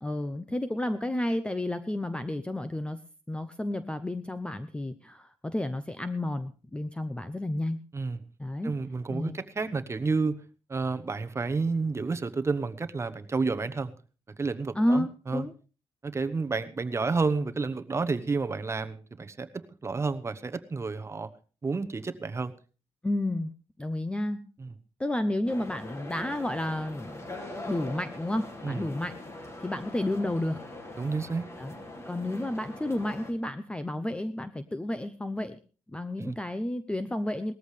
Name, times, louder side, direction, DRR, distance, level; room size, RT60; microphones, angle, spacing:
voice 1, 0.0-3.0 3.3-7.8 8.4-8.7 9.1-9.4 14.7-15.5 23.0-23.5 23.8-24.4 25.0-27.3 27.7-29.1 29.6-30.6 31.6-31.8 32.1-35.6 35.9-37.5, left 1 dB, 10° left, 11 dB, 0.7 m, -31 dB
voice 2, 8.6-10.4 10.7-13.9 14.4-15.5 16.0-21.3 21.6-22.5 24.6-24.7 28.6-28.8 31.0-31.5 36.2-36.4, right 4 dB, 25° right, 10 dB, 1.0 m, -30 dB
sound 1, 25.5-33.3, left 2 dB, 25° left, 2.5 m, -42 dB
18.5 x 14.0 x 3.3 m, 0.36 s
cardioid pair, 120°, 10 cm